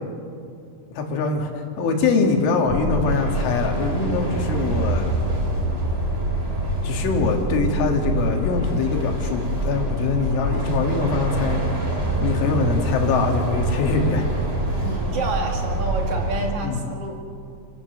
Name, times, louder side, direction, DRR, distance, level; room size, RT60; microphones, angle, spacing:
voice 1, 1.0-1.5 1.8-5.1 6.8-11.6 12.2-14.3 16.6-16.9, left 4 dB, 75° left, 3 dB, 4.4 m, -23 dB
sound 1, 2.6-16.5, right 1 dB, 15° right, 2.7 m, -25 dB
voice 2, 14.8-17.2, right 3 dB, 50° right, 2 dB, 1.8 m, -29 dB
29.5 x 15.0 x 6.7 m, 2.5 s
omnidirectional pair, 5.6 m